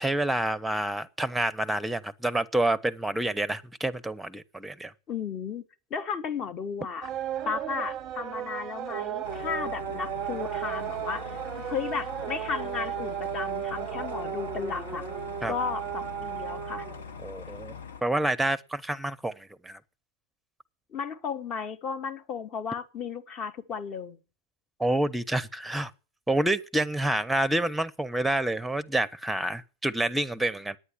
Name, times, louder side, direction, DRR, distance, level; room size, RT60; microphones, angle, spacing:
voice 1, 0.0-4.9 15.4-15.5 17.2-17.7 18.0-19.8 24.8-25.9 26.3-30.8, right 1 dB, 5° right, 0.8 m, -28 dB
voice 2, 5.1-5.6 5.9-7.1 7.4-15.0 15.5-16.9 20.9-24.2, left 6 dB, 30° left, 1.2 m, -34 dB
sound 1, 7.0-17.3, right 11 dB, 35° right, 0.6 m, -35 dB
sound 2, 9.2-18.0, left 7 dB, 65° left, 1.0 m, -43 dB
9.8 x 9.4 x 9.9 m
figure-of-eight pair, 90°, 0 cm